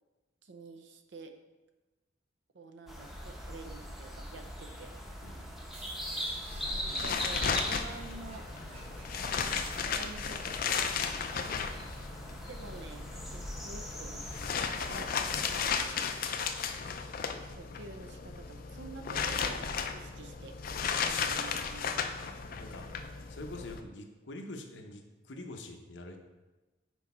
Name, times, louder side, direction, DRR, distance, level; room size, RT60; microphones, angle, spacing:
voice 1, 0.4-1.3 2.5-4.9 6.7-8.5 9.8-11.1 12.3-13.0 13.3-14.3 14.8-16.1 17.5-20.6 21.0-21.9, right 3 dB, 70° right, 6 dB, 0.6 m, -49 dB
sound 1, 2.9-15.9, equal, ahead, 0.8 m, -41 dB
voice 2, 5.2-5.7 22.1-23.0 23.3-26.2, left 2 dB, 80° left, 4 dB, 0.8 m, -46 dB
sound 2, 5.7-10.1, right 1 dB, 35° right, 1.1 m, -50 dB
sound 3, 6.5-23.8, left 6 dB, 50° left, 0.4 m, -35 dB
6.2 x 4.7 x 4.2 m, 1.2 s
head